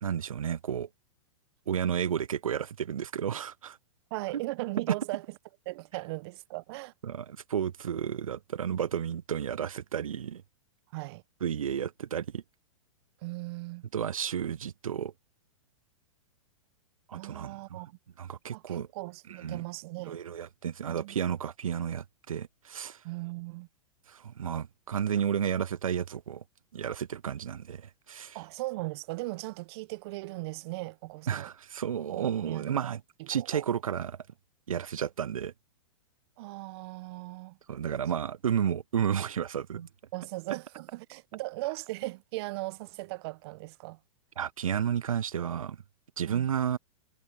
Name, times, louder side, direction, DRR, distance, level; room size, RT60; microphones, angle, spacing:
voice 1, 0.0-0.9 1.7-3.8 4.9-5.0 7.0-10.4 11.4-12.4 13.9-15.1 17.1-17.6 18.2-18.9 19.4-19.6 20.1-23.0 24.1-26.4 26.7-28.4 31.3-33.0 33.3-34.2 34.7-35.5 37.7-39.9 44.4-45.8 46.2-46.8, right 8 dB, 80° right, 0.5 m, -32 dB
voice 2, 4.1-5.2 5.6-6.9 10.9-11.2 13.2-13.8 17.1-18.0 18.5-20.2 20.9-21.2 23.0-23.7 28.3-31.5 32.1-32.9 33.2-33.7 36.4-37.6 40.1-44.0 46.3-46.5, right 22 dB, 50° right, 1.1 m, -38 dB
hypercardioid pair, 110°, 17 cm